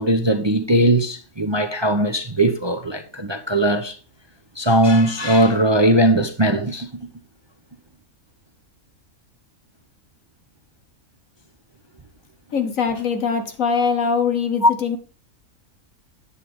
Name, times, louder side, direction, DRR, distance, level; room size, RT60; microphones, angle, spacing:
voice 1, 0.0-4.0 4.6-6.9 14.6-14.7, right 1 dB, 25° right, 0.6 m, -19 dB
voice 2, 12.5-15.0, left 5 dB, 65° left, 1.6 m, -22 dB
10.5 x 8.3 x 3.5 m
omnidirectional pair, 1.5 m